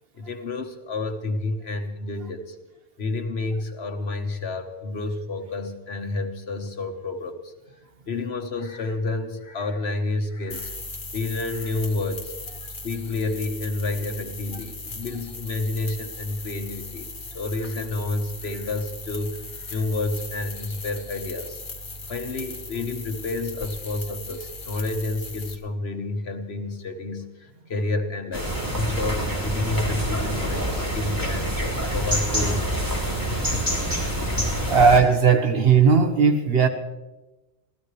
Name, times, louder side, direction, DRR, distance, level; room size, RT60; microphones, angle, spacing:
voice 1, 0.2-2.6 3.0-7.5 8.1-10.7 11.1-12.3 12.8-21.6 22.1-32.8 33.2-33.7 34.4-34.5, left 2 dB, 90° left, 6 dB, 1.7 m, -30 dB
sound 1, 10.5-25.5, left 2 dB, 55° left, 1.5 m, -38 dB
sound 2, 28.3-35.0, right 1 dB, 20° right, 3.4 m, -26 dB
voice 2, 34.7-36.7, right 5 dB, 70° right, 7 dB, 1.5 m, -17 dB
25.5 x 16.5 x 3.3 m, 1.1 s
omnidirectional pair, 1.0 m